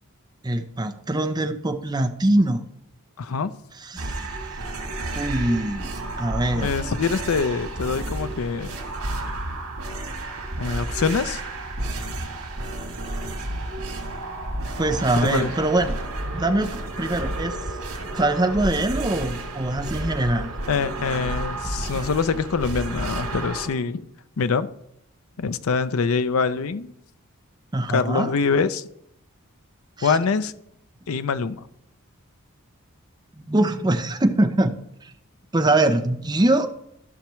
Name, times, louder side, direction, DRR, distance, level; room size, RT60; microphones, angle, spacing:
voice 1, 0.4-2.6 3.8-4.5 5.2-5.9 6.2-6.7 14.8-16.0 16.3-17.6 18.1-20.5 27.7-28.3 30.0-30.2 33.4-35.1 35.5-36.7, right 1 dB, 20° right, 0.6 m, -23 dB
voice 2, 3.2-3.5 6.5-8.7 10.6-11.4 15.2-15.5 20.7-24.1 24.4-24.7 25.4-26.9 27.9-28.9 30.0-30.5 31.1-31.7, left 5 dB, 70° left, 0.5 m, -24 dB
sound 1, 4.0-23.7, right 2 dB, 85° right, 2.4 m, -31 dB
15.0 x 5.8 x 3.1 m
head